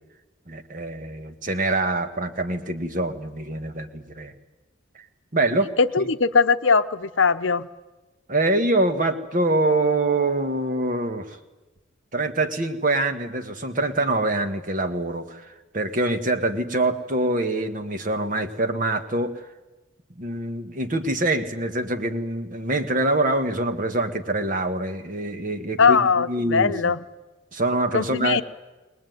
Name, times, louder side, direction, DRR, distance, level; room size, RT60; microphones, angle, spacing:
voice 1, 0.5-4.3 5.3-5.7 6.0-6.1 8.3-11.4 12.1-19.3 20.2-26.9 27.5-28.4, right 2 dB, 40° right, 8 dB, 1.5 m, -25 dB
voice 2, 5.8-7.7 25.8-27.0 27.9-28.4, left 5 dB, 70° left, 11 dB, 0.8 m, -20 dB
22.5 x 20.0 x 9.4 m, 1.1 s
head